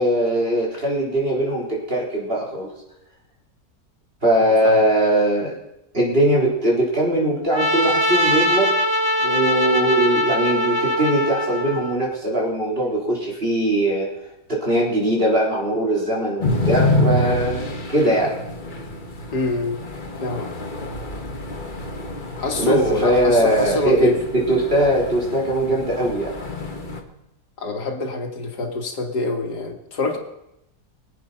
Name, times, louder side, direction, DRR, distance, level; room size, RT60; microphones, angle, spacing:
voice 1, 0.0-2.7 4.2-5.5 5.9-8.7 9.2-14.1 14.5-18.4 22.6-26.3, right 1 dB, 35° right, -3 dB, 4.2 m, -20 dB
voice 2, 4.4-4.8 19.3-19.8 20.2-20.5 22.4-24.2 27.6-30.2, left 2 dB, 80° left, 3 dB, 2.4 m, -25 dB
Trumpet, 7.5-12.0, left 1 dB, 20° right, 1.0 m, -21 dB
sound 1, 16.4-27.0, left 2 dB, 30° left, 1.6 m, -27 dB
23.0 x 8.4 x 5.7 m, 0.86 s
omnidirectional pair, 1.7 m